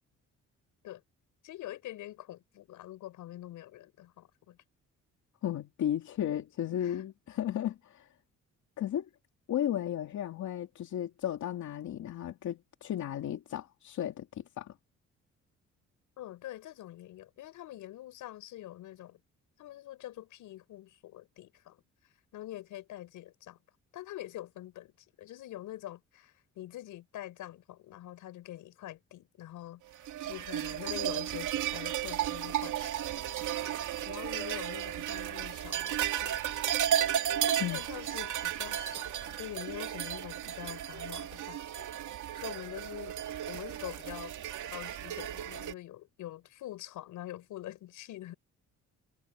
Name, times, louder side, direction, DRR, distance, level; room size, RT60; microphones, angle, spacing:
voice 1, 1.4-4.6 6.8-7.0 16.2-19.2 19.6-21.8 22.3-23.6 23.9-33.4 34.0-36.4 37.5-41.9 42.3-43.2 43.5-44.3 44.6-48.3, left 14 dB, 85° left, 6.1 m, -45 dB
voice 2, 5.4-8.1 8.8-9.1 9.5-14.7 37.6-37.8, left 11 dB, 70° left, 2.5 m, -34 dB
sound 1, 30.0-45.7, right 11 dB, 80° right, 2.4 m, -34 dB
cardioid pair, 90°, 30 cm